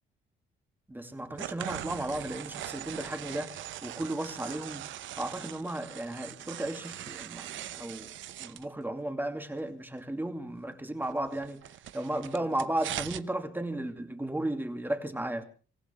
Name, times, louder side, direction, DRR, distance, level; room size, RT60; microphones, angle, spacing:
voice 1, 0.9-3.6 3.8-4.9 5.2-8.1 8.4-11.6 11.9-15.4, right 1 dB, 10° right, 2.5 m, -34 dB
sound 1, 1.3-8.6 11.0-13.2, right 12 dB, 75° right, 0.8 m, -41 dB
26.0 x 16.0 x 3.4 m
cardioid pair, 90°, 20 cm